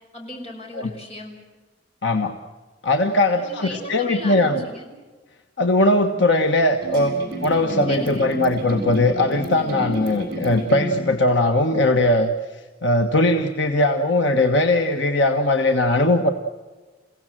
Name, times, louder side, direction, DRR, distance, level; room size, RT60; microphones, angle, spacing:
voice 1, 0.1-1.4 3.4-4.9 7.9-8.3, left 1 dB, 35° left, 1 dB, 5.5 m, -36 dB
voice 2, 2.0-2.3 2.8-4.7 5.6-7.1 7.4-12.3 12.8-16.3, left 2 dB, 75° left, 5 dB, 1.4 m, -19 dB
sound 1, 6.8-11.0, equal, 50° right, 7.5 m, -31 dB
29.5 x 17.0 x 7.7 m, 1.3 s
head